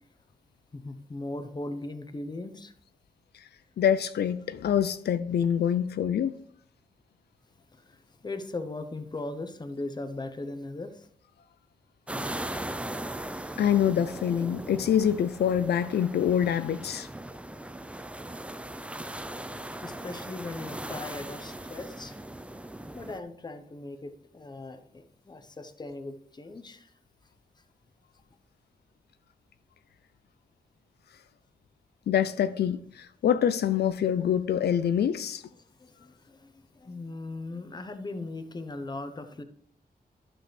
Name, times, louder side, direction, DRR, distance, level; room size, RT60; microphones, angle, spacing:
voice 1, 0.7-2.7 7.9-11.1 19.2-19.5 19.8-22.2 22.9-26.9 35.8-39.4, left 2 dB, 25° left, 0.8 m, -39 dB
voice 2, 3.8-6.4 13.6-17.1 32.1-35.4, left 9 dB, 85° left, 0.4 m, -25 dB
sound 1, 12.1-23.2, right 1 dB, 5° right, 0.4 m, -39 dB
11.5 x 6.2 x 3.2 m
wide cardioid pair, 110°, 16 cm